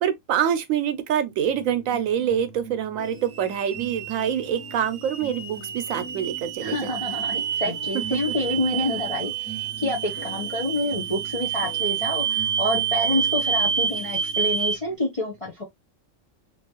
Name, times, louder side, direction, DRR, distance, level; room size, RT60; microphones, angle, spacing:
voice 1, 0.0-7.0 7.7-7.8 8.1-8.2, right 9 dB, 85° right, 1.0 m, -26 dB
sound 1, 1.4-14.9, right 4 dB, 10° left, 1.5 m, -42 dB
sound 2, 3.0-14.8, right 7 dB, 60° right, 0.6 m, -28 dB
voice 2, 6.6-15.6, left 1 dB, 30° left, 0.8 m, -28 dB
3.4 x 3.0 x 2.9 m
omnidirectional pair, 1.4 m